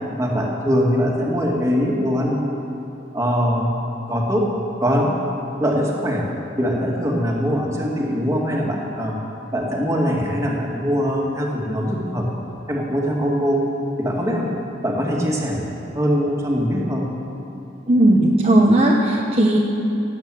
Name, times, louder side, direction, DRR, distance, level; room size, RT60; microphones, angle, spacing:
voice 1, 0.2-2.5 3.1-3.7 4.1-5.2 5.6-6.3 6.6-9.2 9.5-12.3 12.7-13.6 14.0-14.5 14.8-15.6 15.9-17.0, equal, 15° right, -2 dB, 2.2 m, -22 dB
voice 2, 17.9-19.6, right 1 dB, 35° right, -3 dB, 1.1 m, -16 dB
17.5 x 8.8 x 7.7 m, 2.9 s
head